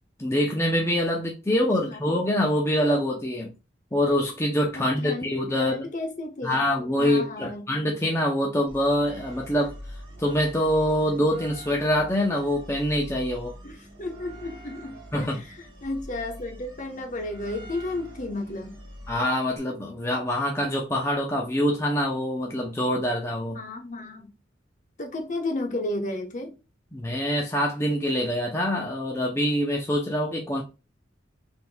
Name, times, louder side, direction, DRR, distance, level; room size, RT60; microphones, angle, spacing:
voice 1, 0.2-3.5 3.9-5.8 6.4-9.7 10.2-13.5 15.1-15.4 19.1-23.6 26.9-30.6, equal, 15° left, 0.6 m, -25 dB
voice 2, 4.7-6.6 7.0-7.7 13.6-18.8 23.5-24.3 25.0-26.5, left 2 dB, 40° left, 0.9 m, -33 dB
sound 1, 8.7-19.6, equal, 25° right, 1.6 m, -44 dB
4.4 x 3.5 x 2.2 m
head